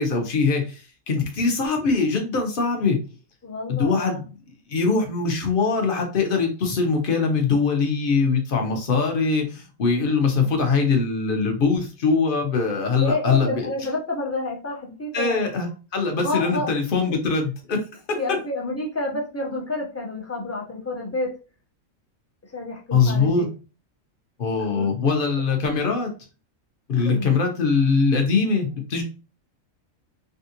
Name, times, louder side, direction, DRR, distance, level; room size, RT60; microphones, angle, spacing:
voice 1, 0.0-3.0 3.7-4.3 4.7-13.7 15.1-17.8 18.1-18.2 22.9-23.5 24.4-26.1 26.9-29.0, left 4 dB, 50° left, 4 dB, 0.8 m, -22 dB
voice 2, 3.4-4.2 13.0-15.5 16.2-16.7 18.1-21.3 22.5-23.5 24.6-24.9 27.0-27.3, left 2 dB, 20° left, -1 dB, 0.4 m, -29 dB
3.5 x 2.4 x 2.7 m, 0.33 s
omnidirectional pair, 1.4 m